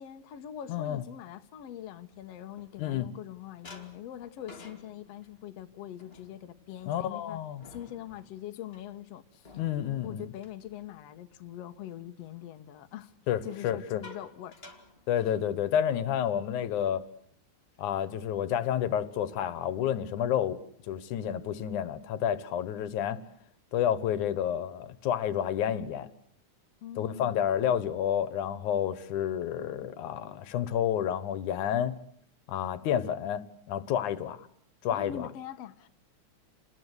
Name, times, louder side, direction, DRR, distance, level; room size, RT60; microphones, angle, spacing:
voice 1, 0.0-7.4 7.7-9.5 10.0-13.1 13.4-14.5 26.8-27.6 34.9-35.9, left 11 dB, 60° left, 2.2 m, -43 dB
voice 2, 0.7-1.0 2.8-3.1 6.9-7.6 9.6-10.2 13.3-14.0 15.1-17.0 17.8-20.6 20.9-23.2 23.7-26.1 27.0-32.0 32.5-34.5 34.8-35.3, left 9 dB, 85° left, 2.7 m, -30 dB
sound 1, 1.8-3.2 3.6-11.5 11.8-12.1 13.3-15.9 16.2-16.4 16.7-17.0 17.5-18.2, left 3 dB, 20° left, 2.7 m, -54 dB
29.5 x 20.0 x 8.1 m
omnidirectional pair, 3.4 m